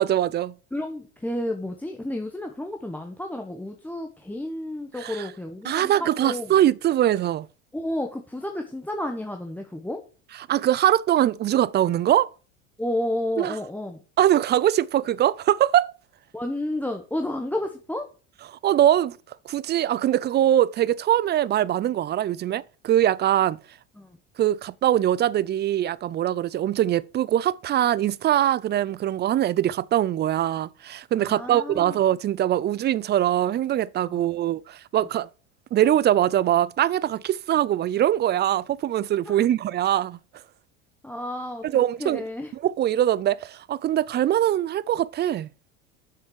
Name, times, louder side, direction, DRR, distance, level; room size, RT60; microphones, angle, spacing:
voice 1, 0.0-0.5 5.0-5.3 5.6-7.5 10.5-12.3 13.4-13.5 14.2-15.9 18.5-19.2 19.5-23.6 24.4-35.3 35.7-40.2 41.7-42.2 42.6-45.5, right 12 dB, 30° right, 0.4 m, -22 dB
voice 2, 0.7-6.5 7.7-10.0 12.8-14.0 16.3-18.1 24.0-24.2 31.2-32.0 34.0-34.2 39.2-39.4 41.0-41.6 42.0-42.5, left 1 dB, 5° left, 1.2 m, -31 dB
7.2 x 6.1 x 6.4 m
hypercardioid pair, 85°, 36 cm